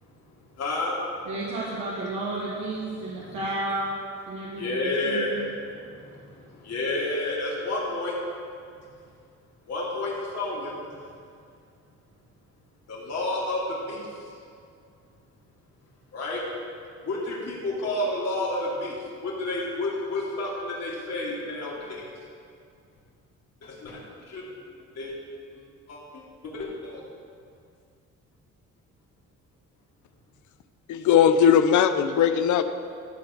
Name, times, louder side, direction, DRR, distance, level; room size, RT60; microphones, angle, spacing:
voice 1, 0.6-0.9 2.9-3.5 4.4-8.1 9.7-10.7 12.9-14.1 16.1-16.4 17.0-22.0 23.6-24.0 24.3-24.5 24.9-25.1 25.6-27.0, left 2 dB, 60° left, -5 dB, 2.7 m, -31 dB
voice 2, 1.3-4.0 4.3-5.5, right 2 dB, 85° right, -6 dB, 1.6 m, -32 dB
voice 3, 30.9-32.6, left 8 dB, 75° left, 10 dB, 0.7 m, -19 dB
12.5 x 4.5 x 7.2 m, 2.3 s
cardioid pair, 90°, 30 cm